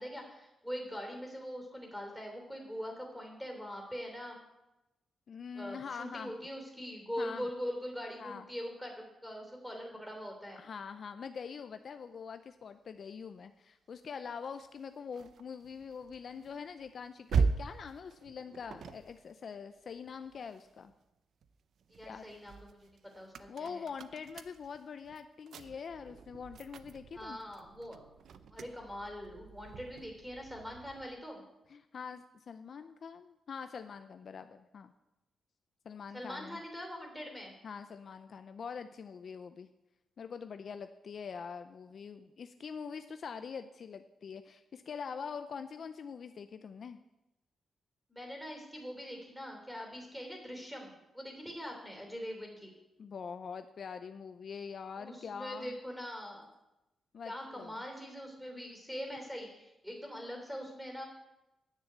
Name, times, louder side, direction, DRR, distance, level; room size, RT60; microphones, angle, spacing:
voice 1, 0.0-4.4 5.5-10.6 21.9-23.8 27.1-28.0 28.5-31.4 36.1-37.5 48.1-52.7 55.0-56.5 57.2-61.1, equal, ahead, 2 dB, 3.1 m, -42 dB
voice 2, 5.3-6.3 7.2-7.5 8.2-8.5 10.6-20.9 22.0-22.2 23.5-27.4 31.7-34.9 35.8-36.6 37.6-39.7 40.2-47.0 53.0-55.8 57.1-57.7, left 6 dB, 50° left, 9 dB, 0.5 m, -44 dB
sound 1, 14.4-21.0 21.4-31.2, right 5 dB, 70° right, 0.6 m, -40 dB
9.9 x 6.9 x 7.9 m, 0.95 s
cardioid pair, 120°, 0 cm